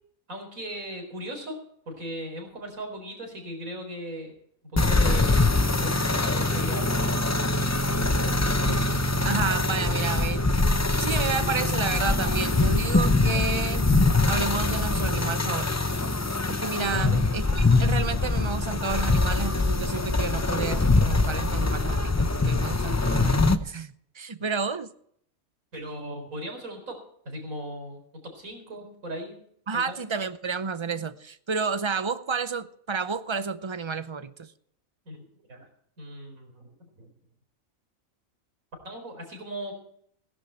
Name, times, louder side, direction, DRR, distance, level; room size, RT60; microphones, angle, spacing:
voice 1, 0.3-1.6 1.9-4.3 4.7-7.0 8.0-8.4 16.8-17.2 24.4-24.5 25.7-27.0 27.2-29.4 29.7-30.0 35.0-35.2 35.5-35.7 36.0-36.7 37.0-37.1 38.8-39.7, equal, 90° right, 4.7 m, -38 dB
sound 1, 4.8-23.6, left 2 dB, 25° left, 0.3 m, -23 dB
voice 2, 9.2-10.4 11.0-13.9 14.3-15.7 16.5-24.9 29.7-34.5, right 5 dB, 30° right, 0.5 m, -31 dB
17.5 x 11.0 x 4.4 m
omnidirectional pair, 1.4 m